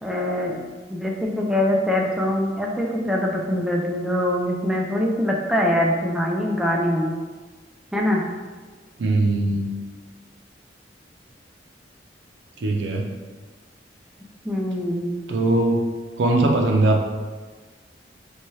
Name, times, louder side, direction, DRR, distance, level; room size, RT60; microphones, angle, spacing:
voice 1, 0.0-0.6 0.9-7.1 7.9-8.2 14.4-15.1, left 1 dB, 5° right, -2 dB, 0.3 m, -23 dB
voice 2, 9.0-9.7 12.6-13.1 15.3-15.9 16.2-17.0, right 2 dB, 90° right, 1 dB, 0.4 m, -20 dB
2.7 x 2.3 x 3.1 m, 1.4 s
head